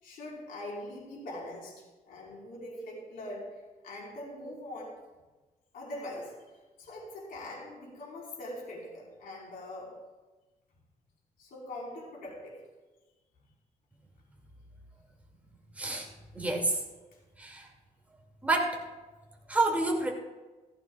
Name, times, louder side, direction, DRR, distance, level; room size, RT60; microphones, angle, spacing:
voice 1, 0.0-4.9 5.7-6.3 6.8-9.9 11.4-12.6, left 1 dB, 85° left, -3 dB, 4.5 m, -42 dB
voice 2, 15.7-16.1 16.3-16.8 17.4-17.7 18.4-18.8 19.5-20.1, right 2 dB, 10° right, -1 dB, 2.4 m, -28 dB
16.0 x 15.0 x 2.4 m, 1.2 s
cardioid pair, 115°, 15 cm